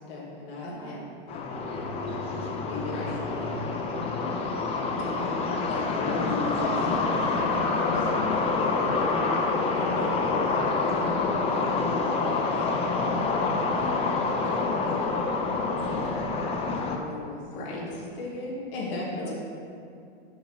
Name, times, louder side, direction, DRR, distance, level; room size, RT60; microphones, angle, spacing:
voice 1, 0.1-3.9 5.1-11.1 11.4-15.2 15.8-19.4, left 2 dB, 70° left, -5 dB, 2.0 m, -39 dB
voice 2, 0.6-1.0 2.9-3.1 7.8-8.1 9.9-10.2 17.5-17.8, equal, 40° left, -6 dB, 2.2 m, -41 dB
sound 1, 1.3-17.0, left 3 dB, 20° left, 0.7 m, -27 dB
6.9 x 5.8 x 5.7 m, 2.4 s
supercardioid pair, 145°, 30 cm